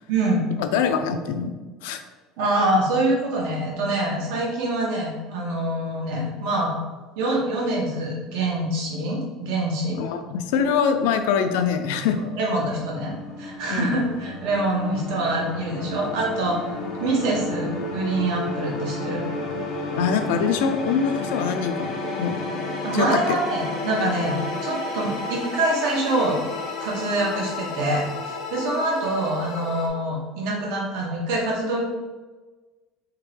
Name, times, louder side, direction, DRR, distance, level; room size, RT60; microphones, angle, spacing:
voice 1, 0.1-0.5 2.4-6.8 7.2-10.0 12.2-13.1 13.4-16.7 17.0-19.3 22.8-26.4 26.8-31.9, right 1 dB, 70° right, -3 dB, 1.2 m, -25 dB
voice 2, 0.6-1.5 1.8-2.0 10.0-12.2 13.7-14.0 20.0-22.4 22.9-23.4, left 6 dB, 85° left, 8 dB, 0.4 m, -24 dB
sound 1, 11.9-29.9, left 2 dB, 55° left, 0.8 m, -32 dB
3.7 x 2.9 x 3.2 m, 1.3 s
cardioid pair, 165°, 0 cm